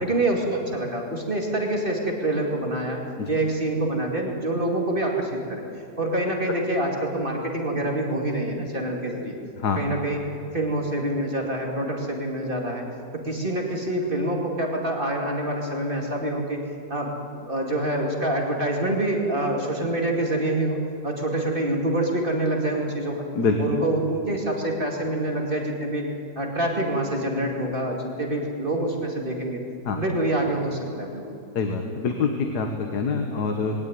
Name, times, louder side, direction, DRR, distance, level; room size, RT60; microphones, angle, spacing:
voice 1, 0.0-3.0 3.3-5.6 6.0-9.3 9.8-10.2 10.5-12.8 13.1-16.6 16.9-23.2 23.6-26.0 26.4-29.6 29.9-31.2, right 1 dB, 30° right, 0 dB, 2.5 m, -26 dB
voice 2, 31.6-33.8, left 5 dB, 70° left, 4 dB, 1.9 m, -25 dB
21.0 x 17.0 x 9.5 m, 2.8 s
omnidirectional pair, 1.8 m